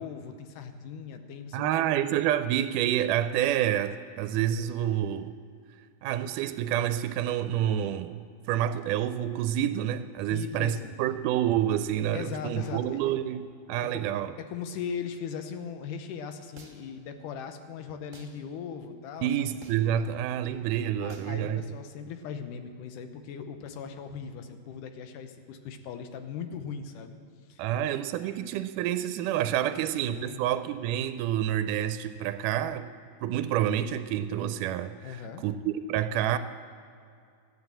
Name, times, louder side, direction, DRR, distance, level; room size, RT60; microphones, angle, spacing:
voice 1, 0.0-1.7 10.3-10.9 12.1-13.0 13.8-14.0 14.5-19.5 20.6-20.7 21.0-27.2 27.5-27.8 28.2-28.3 29.6-30.4 35.0-35.5, left 7 dB, 85° left, 8 dB, 2.4 m, -39 dB
voice 2, 1.5-5.4 6.0-8.2 8.5-14.4 19.2-21.6 27.6-32.9 33.2-36.4, right 11 dB, 90° right, 11 dB, 2.1 m, -28 dB
sound 1, 16.6-17.0 18.1-18.3 19.6-20.0 21.1-21.4, right 3 dB, 35° right, 1.2 m, -50 dB
13.5 x 9.7 x 7.5 m, 2.4 s
omnidirectional pair, 3.6 m